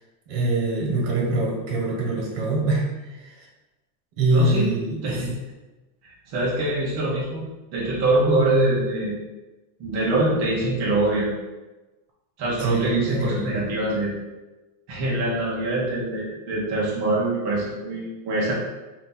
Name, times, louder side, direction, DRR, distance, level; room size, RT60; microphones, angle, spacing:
voice 1, 0.3-2.8 3.1-3.4 4.2-5.2 12.6-13.5, right 2 dB, 90° right, -1 dB, 1.2 m, -24 dB
voice 2, 4.3-4.7 5.0-5.3 6.3-9.2 9.8-11.3 12.4-14.1 14.9-18.5, right 2 dB, 35° right, -6 dB, 0.7 m, -24 dB
2.7 x 2.5 x 3.7 m, 1.1 s
cardioid pair, 170°, 49 cm